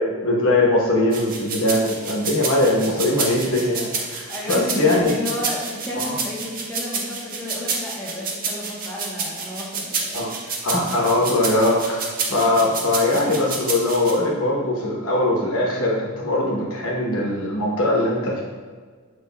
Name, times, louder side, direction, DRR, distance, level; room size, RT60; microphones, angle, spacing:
voice 1, 0.0-5.1 6.0-6.1 10.1-10.3 10.6-18.4, left 1 dB, 70° left, -3 dB, 1.0 m, -21 dB
sound 1, 1.1-14.1, right 4 dB, 40° right, 0.6 m, -29 dB
voice 2, 4.3-10.7, left 1 dB, 5° left, -8 dB, 0.9 m, -32 dB
7.2 x 3.2 x 2.2 m, 1.5 s
head